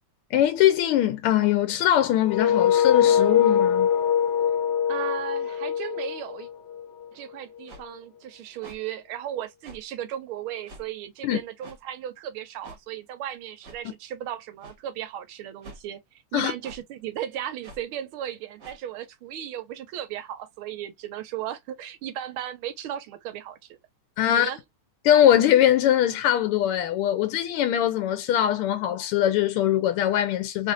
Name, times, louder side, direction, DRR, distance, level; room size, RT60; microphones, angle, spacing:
voice 1, 0.3-3.9 11.2-11.4 16.3-16.5 24.2-24.5 25.0-30.7, left 11 dB, 90° left, 1.5 m, -22 dB
sound 1, 2.2-7.1, left 8 dB, 75° left, 1.5 m, -23 dB
voice 2, 4.9-6.5 7.1-16.0 16.3-23.8 24.3-24.6, right 11 dB, 80° right, 1.5 m, -36 dB
sound 2, 7.7-7.8 8.6-8.8 9.6-9.8 10.7-10.9 11.6-11.8 12.6-12.8 13.6-13.8 14.6-14.8 15.6-15.8 16.6-16.8 17.6-17.8 18.6-18.8, right 2 dB, 45° right, 1.4 m, -45 dB
3.6 x 2.5 x 2.5 m
omnidirectional pair, 2.4 m